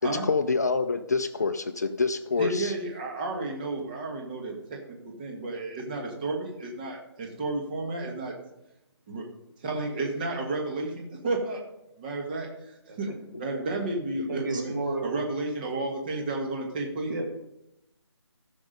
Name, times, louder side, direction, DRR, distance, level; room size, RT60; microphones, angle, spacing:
voice 1, 0.0-2.7, left 4 dB, 35° left, 10 dB, 0.5 m, -26 dB
voice 2, 2.4-8.3 9.1-9.2 9.6-11.6 12.0-14.7 15.0-17.1, right 2 dB, 20° right, 0 dB, 1.5 m, -32 dB
voice 3, 14.3-15.1 17.1-17.3, right 2 dB, 45° right, 2 dB, 2.4 m, -31 dB
14.5 x 6.0 x 5.2 m, 0.86 s
figure-of-eight pair, 165°, 15 cm